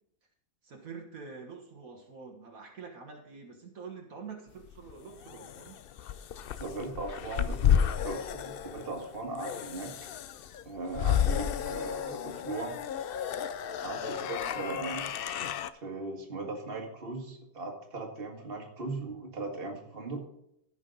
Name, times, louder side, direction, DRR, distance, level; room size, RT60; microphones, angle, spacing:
voice 1, 0.6-5.8 11.5-11.8 14.0-14.3, right 5 dB, 70° right, 2 dB, 1.9 m, -46 dB
sound 1, 4.6-15.7, left 9 dB, 65° left, 0.5 m, -32 dB
voice 2, 6.6-9.9 10.7-12.7 13.8-15.1 15.7-20.2, right 3 dB, 40° right, 1 dB, 2.0 m, -38 dB
15.0 x 6.2 x 3.9 m, 0.75 s
omnidirectional pair, 1.5 m